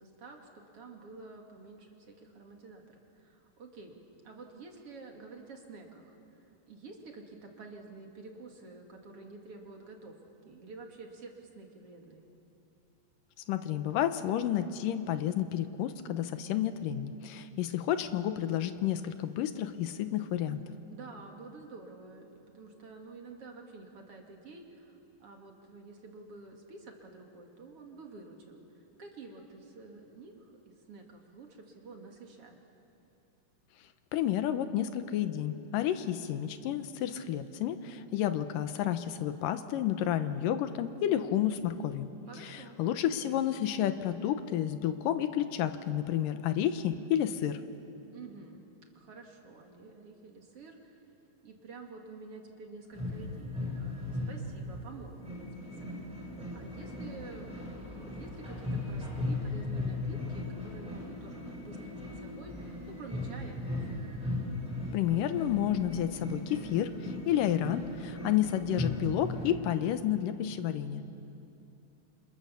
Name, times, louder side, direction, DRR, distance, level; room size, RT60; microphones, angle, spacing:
voice 1, 0.0-10.2 10.4-12.3 20.9-32.6 42.3-42.8 48.1-48.7 48.9-51.0 51.4-55.9 56.5-57.5 57.9-64.0, right 3 dB, 45° right, 2 dB, 2.8 m, -49 dB
voice 2, 13.5-20.6 34.1-42.1 42.4-47.6 64.9-71.0, left 11 dB, 85° left, 10 dB, 2.5 m, -31 dB
sound 1, 52.9-69.5, left 2 dB, ahead, 7.6 m, -37 dB
28.5 x 27.0 x 7.0 m, 2.8 s
omnidirectional pair, 3.9 m